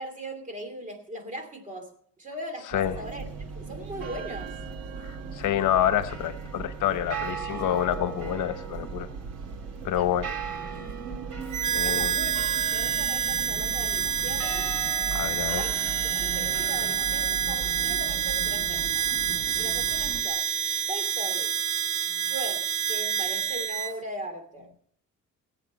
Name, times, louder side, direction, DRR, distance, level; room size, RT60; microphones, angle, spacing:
voice 1, 0.0-1.9 2.2-3.3 3.6-4.6 9.9-10.2 11.8-12.4 12.7-14.7 15.5-18.9 19.6-20.5 20.9-21.6 22.1-24.7, right 1 dB, 25° right, 5 dB, 2.7 m, -39 dB
sound 1, 2.7-20.2, right 5 dB, 90° right, 2.6 m, -37 dB
voice 2, 5.3-9.1 9.8-10.3 11.7-12.1 15.1-15.6, left 11 dB, 70° left, 12 dB, 1.1 m, -27 dB
Harmonica, 11.5-23.9, right 8 dB, 70° right, 1.0 m, -28 dB
19.0 x 8.4 x 5.4 m, 0.63 s
cardioid pair, 135°, 32 cm